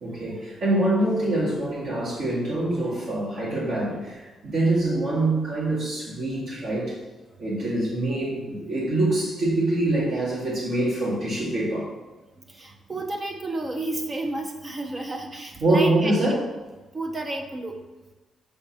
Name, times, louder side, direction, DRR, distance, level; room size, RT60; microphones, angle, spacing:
voice 1, 0.0-7.0 7.4-11.9 15.6-16.5, right 1 dB, 60° right, -7 dB, 2.3 m, -25 dB
voice 2, 12.5-16.4 16.9-17.8, right 2 dB, 20° right, 4 dB, 0.5 m, -31 dB
5.7 x 4.4 x 5.9 m, 1.1 s
cardioid pair, 165°, 0 cm